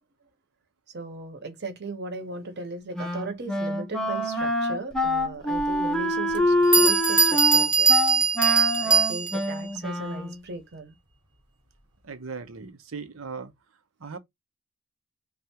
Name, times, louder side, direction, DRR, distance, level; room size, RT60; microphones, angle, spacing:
voice 1, 0.9-8.0 8.8-11.0, right 3 dB, 55° right, 1.0 m, -37 dB
Wind instrument woodwind instrument, 2.9-10.4, left 1 dB, 5° left, 0.6 m, -26 dB
Bell, 5.5-5.6 6.3-6.4 6.7-9.5, right 5 dB, 25° right, 0.9 m, -21 dB
voice 2, 12.0-13.5 14.0-14.2, right 5 dB, 85° right, 0.7 m, -38 dB
3.4 x 2.4 x 2.8 m
head